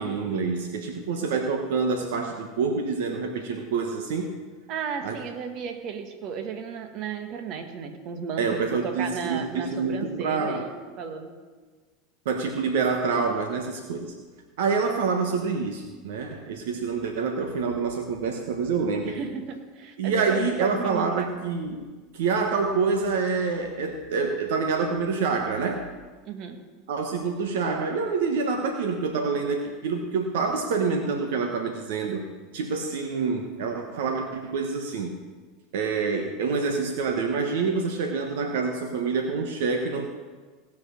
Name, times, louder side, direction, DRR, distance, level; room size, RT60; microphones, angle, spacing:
voice 1, 0.0-4.3 5.0-5.2 8.4-10.7 12.2-14.1 14.6-19.2 20.0-21.9 22.1-25.9 26.9-32.2 32.5-35.2 35.7-40.1, right 4 dB, 75° right, 4 dB, 1.2 m, -27 dB
voice 2, 4.7-11.3 19.0-21.3 26.2-26.6, right 6 dB, 50° right, 6 dB, 1.6 m, -34 dB
18.0 x 6.0 x 6.4 m, 1.4 s
hypercardioid pair, 95°, 0 cm